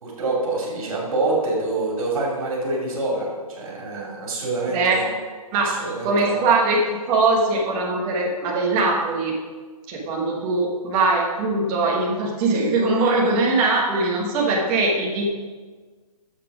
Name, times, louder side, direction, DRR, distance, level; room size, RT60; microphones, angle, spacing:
voice 1, 0.0-5.1 5.6-6.4, right 2 dB, 65° right, -4 dB, 2.9 m, -26 dB
voice 2, 4.7-5.0 5.5-5.7 6.0-9.3 9.9-15.3, right 3 dB, 20° right, -2 dB, 1.3 m, -21 dB
8.7 x 7.4 x 5.0 m, 1.4 s
hypercardioid pair, 170°, 19 cm